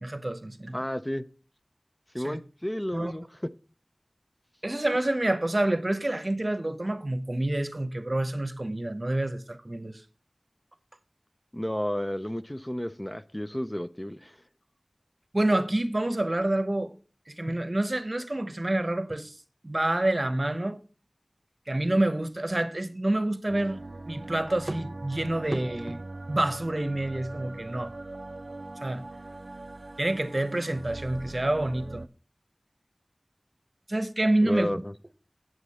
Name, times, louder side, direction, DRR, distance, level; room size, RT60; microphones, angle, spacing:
voice 1, 0.0-0.8 2.2-2.4 2.9-3.1 4.6-10.0 15.3-16.9 17.3-19.3 19.6-20.8 21.7-23.8 24.1-26.0 26.3-27.9 28.8-29.0 30.0-32.0 33.9-34.8, right 1 dB, 50° right, 0.8 m, -28 dB
voice 2, 0.7-1.2 2.1-3.3 11.5-14.4 34.4-34.9, equal, 20° left, 0.5 m, -32 dB
sound 1, 23.5-32.1, right 2 dB, 80° right, 0.4 m, -41 dB
8.2 x 7.8 x 4.2 m
wide cardioid pair, 45°, 0 cm